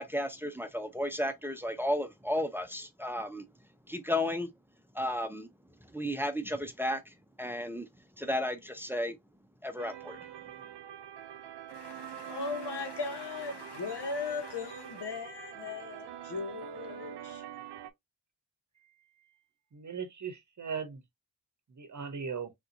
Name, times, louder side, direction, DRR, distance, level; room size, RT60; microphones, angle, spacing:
voice 1, 0.0-3.4 3.9-4.5 4.9-5.5 5.9-7.9 8.2-9.2 9.6-10.2, left 1 dB, 5° right, 0.6 m, -33 dB
sound 1, 9.8-17.9, right 11 dB, 75° right, 0.6 m, -45 dB
voice 2, 11.7-17.4, left 4 dB, 70° left, 1.1 m, -38 dB
voice 3, 18.8-19.3 19.7-21.0 21.7-22.5, right 6 dB, 45° right, 0.8 m, -39 dB
3.6 x 2.7 x 2.6 m
cardioid pair, 70°, 42 cm